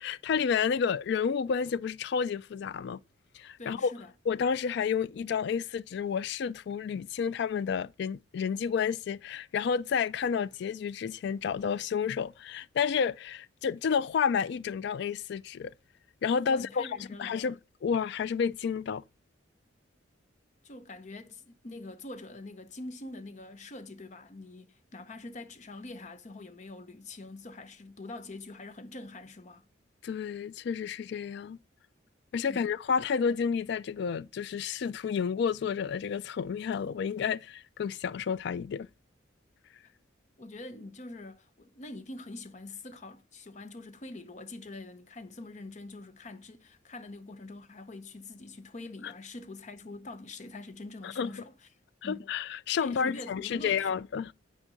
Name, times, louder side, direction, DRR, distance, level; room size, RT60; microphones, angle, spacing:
voice 1, 0.0-3.0 3.3-3.9 4.3-15.7 16.2-19.0 30.0-31.6 32.3-38.9 49.0-49.1 51.0-51.3 52.0-54.3, left 6 dB, 60° left, 0.3 m, -30 dB
voice 2, 3.6-4.1 16.4-17.4 20.6-29.6 32.5-32.7 40.4-51.5 52.0-52.3 52.8-54.0, left 2 dB, 40° left, 0.7 m, -44 dB
8.9 x 4.5 x 3.8 m
head